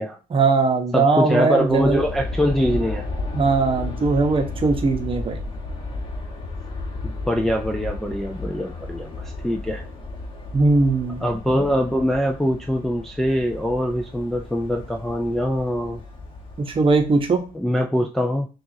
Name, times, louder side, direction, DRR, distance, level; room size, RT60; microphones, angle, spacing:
voice 1, 0.3-2.0 3.3-5.4 10.5-11.2 16.6-17.4, right 3 dB, 30° right, 5 dB, 0.9 m, -19 dB
voice 2, 0.9-3.0 7.0-9.8 11.2-16.0 17.5-18.5, equal, ahead, 2 dB, 0.4 m, -23 dB
Aircraft, 1.6-17.6, left 2 dB, 30° left, 1.2 m, -34 dB
6.0 x 2.5 x 2.7 m, 0.33 s
cardioid pair, 110°, 17 cm